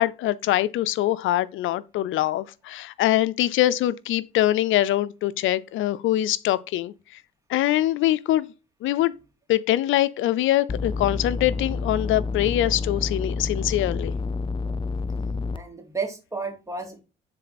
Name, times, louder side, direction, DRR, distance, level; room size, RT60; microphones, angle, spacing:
voice 1, 0.0-6.9 7.5-8.5 8.8-9.1 9.5-14.1, left 14 dB, 80° left, 0.5 m, -23 dB
sound 1, 10.7-15.6, left 4 dB, 25° left, 0.5 m, -29 dB
voice 2, 15.5-17.0, right 4 dB, 15° right, 2.9 m, -32 dB
9.8 x 4.2 x 4.2 m
cardioid pair, 90°, 20 cm